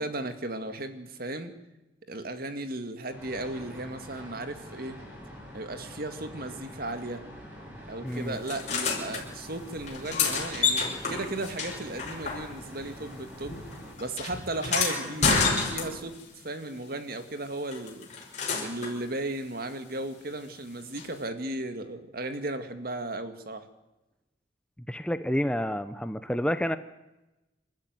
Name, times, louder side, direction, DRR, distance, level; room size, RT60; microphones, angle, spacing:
voice 1, 0.0-1.5 2.1-5.0 5.5-7.2 7.9-13.7 14.0-16.2 16.4-18.1 18.6-23.7, right 2 dB, 50° right, 9 dB, 2.1 m, -35 dB
sound 1, 3.1-13.9, equal, 10° right, 7.4 m, -45 dB
voice 2, 8.0-8.4 24.9-26.8, equal, 5° left, 11 dB, 0.7 m, -29 dB
sound 2, 8.5-9.2 9.8-12.8 13.1-16.2 17.7-19.0 21.0-21.1, left 4 dB, 40° left, 6.0 m, -29 dB
28.5 x 13.5 x 9.5 m, 0.99 s
head